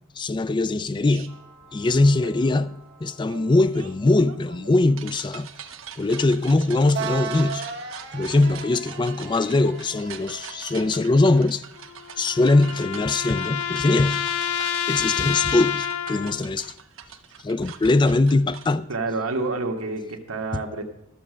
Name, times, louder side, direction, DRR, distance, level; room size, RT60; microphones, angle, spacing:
voice 1, 0.2-1.3 1.7-5.5 6.0-7.7 8.1-11.6 12.2-14.3 14.9-16.7 17.4-18.9 20.5-20.6, left 2 dB, 20° left, 0.3 m, -21 dB
sound 1, 1.0-1.3 3.3-18.7, right 7 dB, 70° right, 0.8 m, -43 dB
sound 2, 1.3-11.6, right 6 dB, 50° right, 1.2 m, -39 dB
voice 2, 2.2-2.5 18.9-20.8, right 3 dB, 85° right, 1.4 m, -29 dB
sound 3, 11.8-16.5, left 9 dB, 85° left, 0.5 m, -28 dB
13.0 x 6.5 x 6.2 m
head